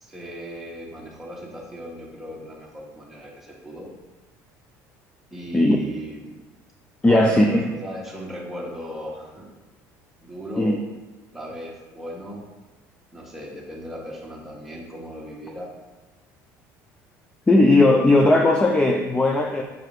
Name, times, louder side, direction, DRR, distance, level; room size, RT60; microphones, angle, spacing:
voice 1, 0.0-3.9 5.3-6.3 7.0-9.5 10.2-10.8 11.3-12.4 13.1-15.7, equal, 5° right, -3 dB, 1.4 m, -37 dB
voice 2, 7.0-7.7 10.6-10.8 17.5-19.6, left 2 dB, 15° left, 3 dB, 0.4 m, -17 dB
6.5 x 4.6 x 3.2 m, 1.2 s
cardioid pair, 110°, 7 cm